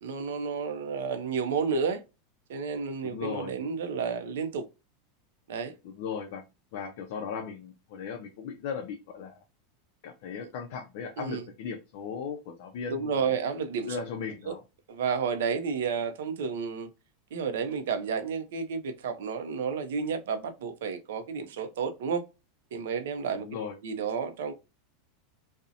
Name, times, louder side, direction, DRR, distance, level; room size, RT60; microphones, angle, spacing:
voice 1, 0.0-2.0 2.5-4.6 5.5-5.7 11.2-11.5 12.9-14.0 14.5-14.6 14.9-16.9 17.3-22.2 22.7-23.5 23.8-24.5, right 6 dB, 85° right, 0.4 m, -31 dB
voice 2, 3.0-3.5 5.8-6.4 6.7-9.3 10.0-13.3 13.9-14.6 23.3-23.8, left 6 dB, 60° left, 0.4 m, -37 dB
2.5 x 2.0 x 2.6 m
supercardioid pair, 160°, 0 cm